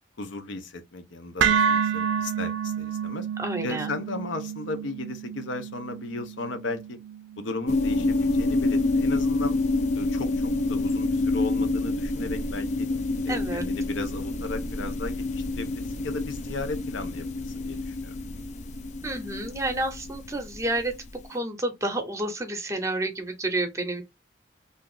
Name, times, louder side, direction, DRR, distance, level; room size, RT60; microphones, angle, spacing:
voice 1, 0.2-3.3 3.6-7.0 7.4-9.6 9.9-12.9 13.2-18.1, left 3 dB, 80° left, 0.6 m, -35 dB
sound 1, 1.4-9.5, right 7 dB, 75° right, 0.4 m, -30 dB
voice 2, 3.4-3.9 13.3-13.6 19.0-20.9 21.3-24.0, right 2 dB, 15° right, 0.7 m, -29 dB
sound 2, 7.7-21.1, left 2 dB, 40° left, 0.3 m, -28 dB
2.6 x 2.4 x 3.7 m
head